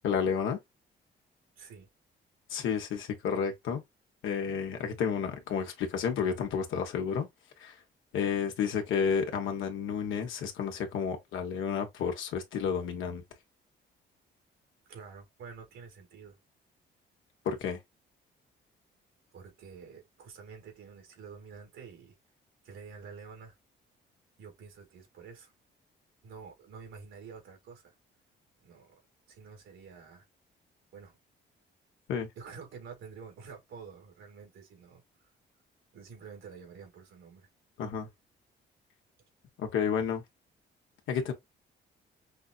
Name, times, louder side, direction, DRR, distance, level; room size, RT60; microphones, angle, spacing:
voice 1, 0.0-0.6 2.5-3.8 4.2-7.3 7.6-7.7 8.1-13.2 17.4-17.8 32.1-32.3 37.8-38.1 39.6-40.2 41.1-41.3, left 7 dB, 80° left, 1.3 m, -31 dB
voice 2, 1.6-1.9 14.9-16.4 19.3-22.2 22.6-23.6 24.4-25.5 26.2-27.9 28.6-29.0 29.3-30.3 30.9-31.2 32.4-35.0 35.9-37.5, right 5 dB, 80° right, 2.3 m, -48 dB
5.6 x 2.7 x 2.4 m
cardioid pair, 90°, 20 cm